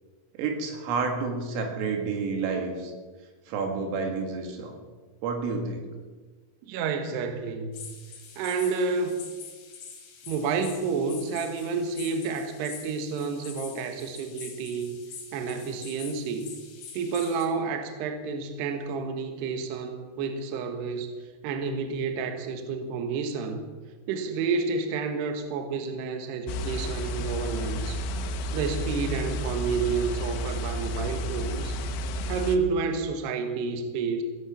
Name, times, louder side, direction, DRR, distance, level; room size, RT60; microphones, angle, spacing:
voice 1, 0.3-2.9 3.5-4.8 5.2-5.9, right 4 dB, 90° right, 3 dB, 4.8 m, -30 dB
voice 2, 6.7-7.9 8.4-9.2 10.3-15.0 15.3-16.5 16.9-21.1 21.4-23.6 24.1-28.0 28.5-31.8 32.3-34.2, right 5 dB, 65° right, 6 dB, 3.1 m, -30 dB
sound 1, 7.7-17.5, left 6 dB, 60° left, 4.1 m, -45 dB
sound 2, 26.5-32.6, equal, 80° left, 3.3 m, -31 dB
17.0 x 11.0 x 7.3 m, 1.4 s
omnidirectional pair, 5.7 m